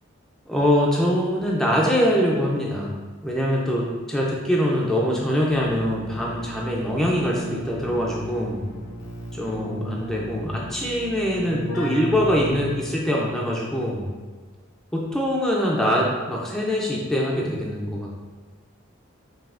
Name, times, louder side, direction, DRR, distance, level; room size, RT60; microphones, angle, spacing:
voice 1, 0.5-2.9 3.2-8.7 9.3-14.1 14.9-18.2, equal, ahead, -3 dB, 0.4 m, -23 dB
Keyboard (musical), 5.5-13.1, right 1 dB, 80° left, 0.7 m, -35 dB
5.3 x 2.6 x 2.5 m, 1.4 s
head